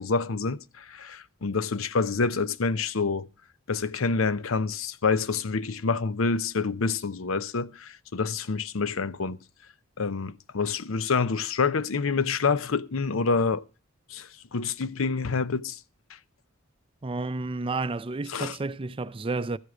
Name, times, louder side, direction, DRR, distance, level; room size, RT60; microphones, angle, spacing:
voice 1, 0.0-3.3 3.7-9.4 10.0-13.6 14.1-15.8 18.3-18.6, left 4 dB, 80° left, 0.7 m, -27 dB
voice 2, 17.0-19.6, right 3 dB, 25° right, 0.5 m, -31 dB
14.0 x 8.1 x 5.1 m
head